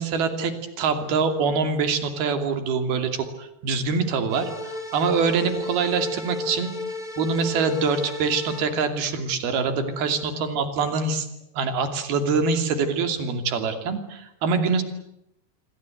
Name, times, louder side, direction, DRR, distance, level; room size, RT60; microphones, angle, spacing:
voice 1, 0.0-6.7 7.2-11.3 11.5-14.8, right 5 dB, 65° right, 8 dB, 4.6 m, -24 dB
sound 1, 4.3-8.6, left 2 dB, 10° left, 3.9 m, -34 dB
28.0 x 24.0 x 7.9 m, 0.81 s
omnidirectional pair, 4.8 m